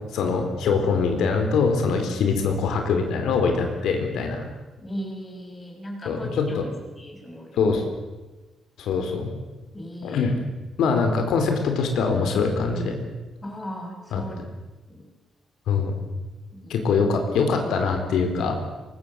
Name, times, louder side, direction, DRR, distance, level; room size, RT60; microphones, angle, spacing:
voice 1, 0.1-4.4 6.0-6.6 7.6-7.8 8.8-9.3 10.0-10.3 10.8-13.0 14.1-14.2 15.7-16.0 16.7-18.6, left 5 dB, 85° left, 4 dB, 4.3 m, -23 dB
voice 2, 4.8-6.6 6.9-7.6 9.7-10.3 13.4-14.4 14.9-15.1 16.5-16.9, equal, 15° left, 1 dB, 5.9 m, -37 dB
25.0 x 22.0 x 7.8 m, 1.2 s
cardioid pair, 175°, 0 cm